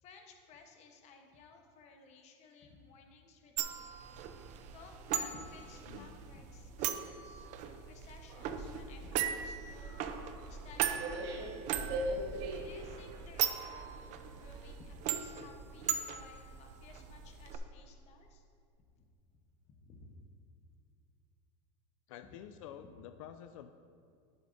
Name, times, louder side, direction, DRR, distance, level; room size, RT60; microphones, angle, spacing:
voice 1, 0.0-3.9 4.7-7.5 7.8-11.9 12.6-18.4 19.7-20.1 22.8-22.9, left 4 dB, 40° left, 4 dB, 1.0 m, -57 dB
sound 1, 3.6-17.6, right 9 dB, 45° right, 0.6 m, -39 dB
sound 2, 8.3-14.8, right 1 dB, 65° right, 1.4 m, -42 dB
voice 2, 22.1-23.7, left 10 dB, 85° left, 8 dB, 0.4 m, -49 dB
10.5 x 7.7 x 2.6 m, 2.4 s
supercardioid pair, 135°, 17 cm